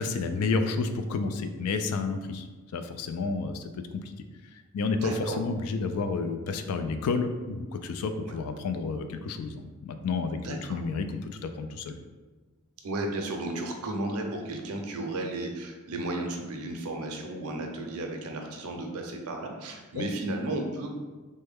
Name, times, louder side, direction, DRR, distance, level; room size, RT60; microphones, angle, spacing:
voice 1, 0.0-2.5 2.7-4.1 4.5-10.4 10.7-12.0, left 4 dB, 75° left, 8 dB, 0.3 m, -30 dB
voice 2, 5.0-5.4 8.2-8.4 10.4-10.8 12.8-20.9, right 2 dB, 75° right, 3 dB, 0.5 m, -34 dB
3.2 x 2.2 x 3.4 m, 1.3 s
head